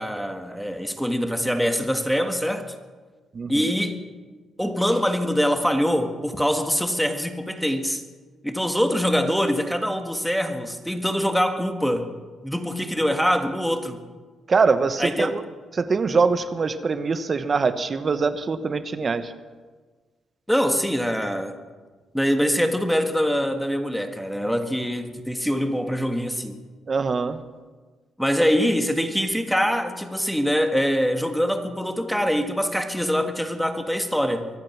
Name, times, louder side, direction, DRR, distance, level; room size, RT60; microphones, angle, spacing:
voice 1, 0.0-2.7 3.5-4.0 4.6-8.0 8.4-12.1 12.4-14.0 15.0-15.4 20.5-21.6 22.1-26.6 28.2-34.4, equal, ahead, 6 dB, 1.6 m, -24 dB
voice 2, 14.5-15.4 15.7-19.3 26.9-27.4, right 4 dB, 40° right, 11 dB, 1.0 m, -23 dB
24.0 x 8.8 x 6.0 m, 1.4 s
cardioid pair, 85°, 0 cm